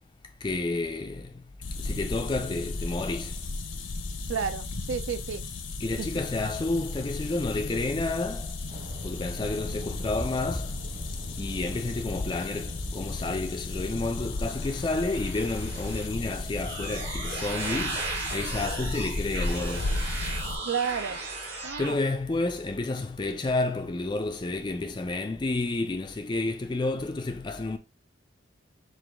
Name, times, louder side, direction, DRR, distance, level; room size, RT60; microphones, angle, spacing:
voice 1, 0.4-1.4 1.8-3.4 5.8-8.5 9.0-10.8 11.4-19.9 21.8-27.8, left 2 dB, 25° left, 0.3 m, -30 dB
sound 1, 1.6-20.6, left 3 dB, 85° left, 0.7 m, -35 dB
voice 2, 4.3-5.4 6.0-6.1 20.7-21.2 21.6-22.0, right 7 dB, 80° right, 0.5 m, -31 dB
sound 2, 8.7-14.9, equal, 35° right, 1.1 m, -41 dB
sound 3, 14.2-21.9, right 2 dB, 55° right, 1.7 m, -35 dB
4.8 x 2.4 x 3.5 m
head